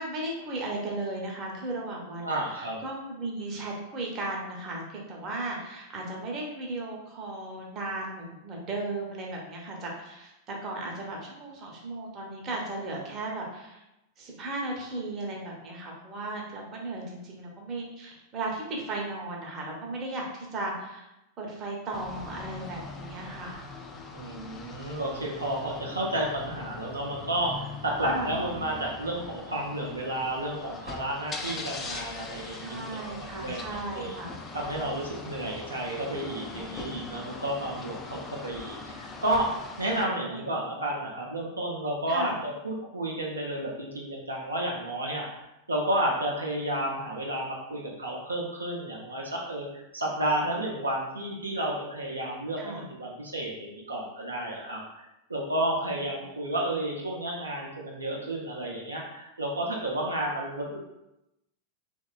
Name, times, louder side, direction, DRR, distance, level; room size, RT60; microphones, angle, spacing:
voice 1, 0.0-13.8 14.2-21.1 21.4-23.7 28.1-28.4 32.5-34.4 40.2-40.4 42.1-42.3 52.6-52.8 55.9-56.0 56.7-56.8, right 2 dB, 30° right, -1 dB, 0.6 m, -36 dB
voice 2, 2.2-2.8 24.1-34.1 34.5-55.0 55.3-60.8, right 1 dB, 80° right, -3 dB, 0.4 m, -31 dB
sound 1, 21.9-40.1, left 3 dB, 20° left, 0.3 m, -42 dB
2.8 x 2.1 x 2.3 m, 0.90 s
figure-of-eight pair, 90°, 0 cm